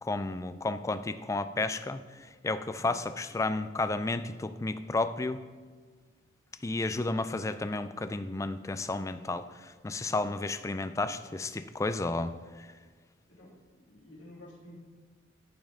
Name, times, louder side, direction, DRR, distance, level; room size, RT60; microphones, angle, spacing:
voice 1, 0.0-2.0 2.4-5.4 6.6-12.3 12.6-12.7, left 2 dB, 15° left, 11 dB, 0.3 m, -32 dB
voice 2, 13.9-14.8, left 1 dB, 85° left, -5 dB, 3.0 m, -51 dB
14.0 x 5.3 x 3.7 m, 1.5 s
head